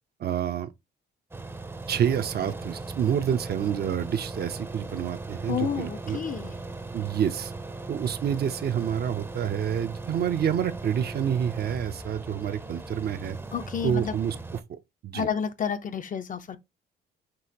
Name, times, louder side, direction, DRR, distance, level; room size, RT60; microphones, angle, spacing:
voice 1, 0.2-0.7 1.9-6.2 6.9-7.5 7.9-13.4 13.8-14.4 14.7-15.3, right 9 dB, 55° right, 0.6 m, -28 dB
sound 1, 1.3-14.6, right 3 dB, 10° right, 0.6 m, -38 dB
voice 2, 5.5-6.5 13.5-14.2 15.1-16.6, left 7 dB, 40° left, 0.6 m, -30 dB
6.1 x 2.8 x 2.7 m
cardioid pair, 90°, 20 cm